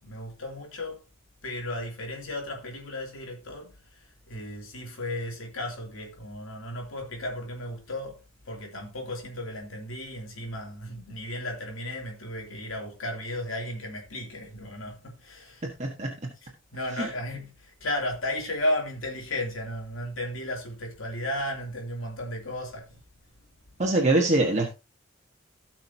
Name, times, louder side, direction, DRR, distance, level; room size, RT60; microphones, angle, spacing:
voice 1, 0.0-1.0 1.4-8.2 8.4-15.6 16.4-23.0, left 1 dB, 85° left, 2.9 m, -34 dB
voice 2, 15.6-16.1 17.0-17.1 23.8-24.7, right 2 dB, 35° right, 1.4 m, -23 dB
17.0 x 6.0 x 2.8 m
head